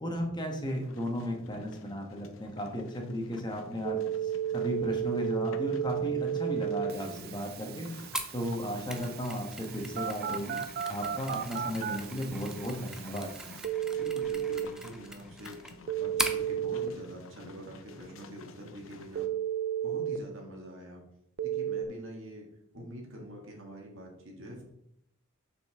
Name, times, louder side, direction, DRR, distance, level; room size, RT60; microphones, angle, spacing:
voice 1, 0.0-7.9 8.3-10.6 10.9-13.3, equal, 20° left, 2 dB, 1.3 m, -35 dB
sound 1, 0.6-19.3, left 4 dB, 70° left, 0.7 m, -53 dB
Telephone, 3.8-14.7 15.9-16.9 19.2-20.2 21.4-21.9, right 10 dB, 50° right, 0.4 m, -34 dB
voice 2, 6.8-7.4 14.0-15.6 15.9-19.3 19.8-21.0 21.4-22.4 22.7-24.6, equal, 65° right, 0 dB, 1.8 m, -45 dB
Mechanisms, 8.1-16.4, right 1 dB, 5° right, 0.6 m, -40 dB
6.9 x 5.6 x 3.6 m, 0.79 s
head